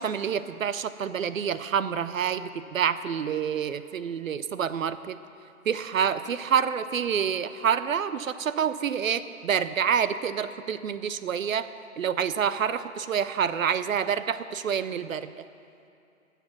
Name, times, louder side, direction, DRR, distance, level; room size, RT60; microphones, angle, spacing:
voice 1, 0.0-5.2 5.7-11.7 12.0-15.3, right 7 dB, 70° right, 13 dB, 0.6 m, -27 dB
15.5 x 6.9 x 6.0 m, 2.6 s
hypercardioid pair, 175°, 42 cm